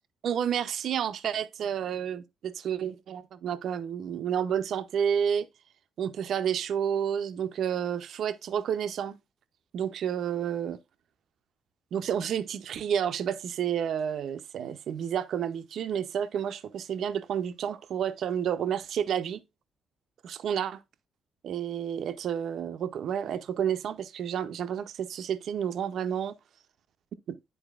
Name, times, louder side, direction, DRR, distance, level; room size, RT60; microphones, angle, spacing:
voice 1, 0.2-5.5 6.0-9.2 9.7-10.8 11.9-19.4 20.2-20.8 21.4-26.3 27.3-27.4, right 8 dB, 70° right, 0.5 m, -30 dB
10.0 x 4.1 x 2.3 m
cardioid pair, 90°, 0 cm